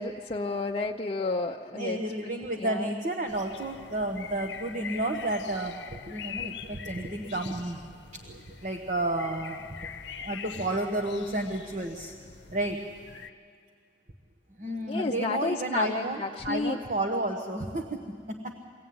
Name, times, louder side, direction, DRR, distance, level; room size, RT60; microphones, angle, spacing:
voice 1, 0.0-2.0 2.6-2.8 14.9-16.8, left 3 dB, 35° left, -1 dB, 0.6 m, -31 dB
voice 2, 1.7-7.8 8.1-9.8 10.1-12.1 12.5-12.8 14.6-18.0 18.3-18.6, right 1 dB, 45° right, 3 dB, 1.3 m, -31 dB
sound 1, 3.3-13.3, left 7 dB, 80° left, 0.7 m, -44 dB
23.5 x 16.5 x 9.5 m, 2.1 s
head